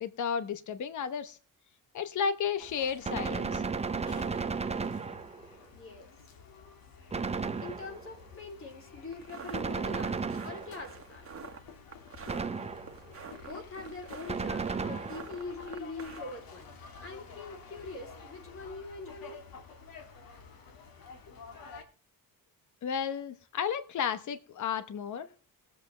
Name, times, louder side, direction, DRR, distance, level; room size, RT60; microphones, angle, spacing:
voice 1, 0.0-1.4 1.9-3.6 22.8-25.3, left 7 dB, 55° left, 12 dB, 1.0 m, -33 dB
sound 1, 2.6-21.8, left 5 dB, 75° left, 2.3 m, -50 dB
Gunshot gunfire, 3.0-5.5 7.1-8.2 9.5-11.0 12.3-13.1 14.3-15.4, right 4 dB, 20° right, 0.7 m, -34 dB
voice 2, 5.7-6.1 7.6-10.2 10.4-11.2 13.5-16.8 17.0-19.4, left 3 dB, 35° left, 3 dB, 3.3 m, -43 dB
sound 2, 9.1-16.4, right 6 dB, 40° right, 1.6 m, -47 dB
20.5 x 7.9 x 3.3 m, 0.37 s
cardioid pair, 140°, 36 cm